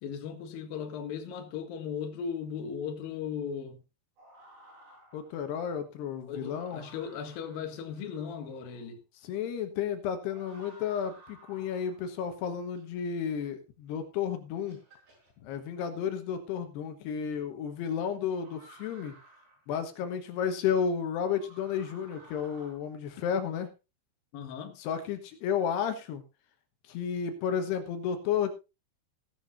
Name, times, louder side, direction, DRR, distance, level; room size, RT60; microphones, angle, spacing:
voice 1, 0.0-3.8 6.3-9.0 24.3-24.8, left 7 dB, 65° left, 3.2 m, -37 dB
sound 1, 4.2-5.4 6.1-8.9 10.2-12.1 12.8-13.3 14.1-14.2 14.7-15.3 16.8-16.9 18.4-19.7 21.3-22.7, right 1 dB, 80° right, 8.4 m, -56 dB
voice 2, 5.1-6.9 9.2-14.8 15.4-19.1 19.7-23.7 24.8-26.2 26.8-28.5, left 7 dB, 85° left, 3.3 m, -32 dB
16.5 x 12.0 x 2.6 m
omnidirectional pair, 4.8 m